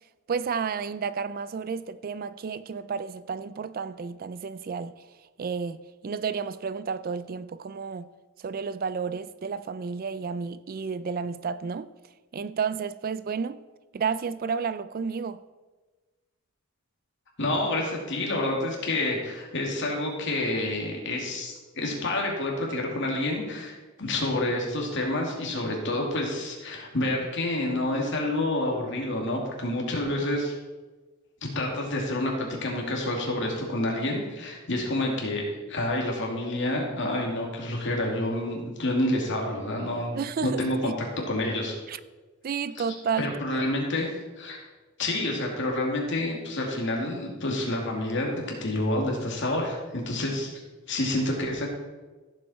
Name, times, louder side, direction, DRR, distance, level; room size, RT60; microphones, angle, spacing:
voice 1, 0.3-5.0 5.4-8.1 8.4-11.9 12.3-13.6 13.9-15.4 40.1-40.9 41.9-42.0 42.4-43.3 43.6-43.7, right 6 dB, 45° right, 0.4 m, -31 dB
voice 2, 17.4-30.5 31.4-40.1 40.4-40.9 41.3-41.8 43.2-44.1 44.4-44.6 45.0-50.5 50.9-51.7, left 1 dB, 60° left, 2.5 m, -28 dB
15.0 x 7.5 x 4.3 m
head